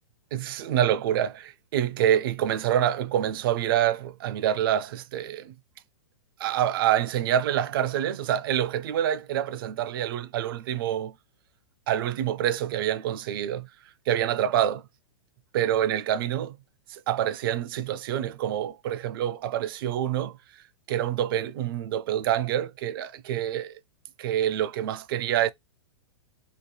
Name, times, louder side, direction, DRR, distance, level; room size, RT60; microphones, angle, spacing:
voice 1, 0.3-5.5 6.4-11.1 11.9-13.7 14.1-14.9 15.5-16.6 16.9-20.4 20.9-23.8 24.2-25.5, right 11 dB, 50° right, 0.4 m, -26 dB
2.8 x 2.1 x 3.1 m
figure-of-eight pair, 105°, 16 cm